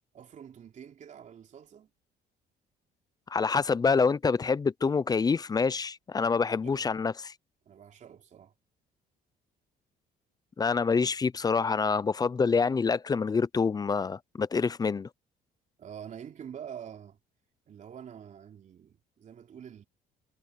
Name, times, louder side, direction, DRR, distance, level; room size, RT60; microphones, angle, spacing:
voice 1, 0.1-1.9 6.2-6.3 6.6-6.9 7.6-8.5 15.8-17.2 17.7-19.8, right 8 dB, 45° right, 3.4 m, -46 dB
voice 2, 3.3-7.3 10.6-15.1, left 5 dB, 25° left, 0.6 m, -26 dB
cardioid pair, 110°, 17 cm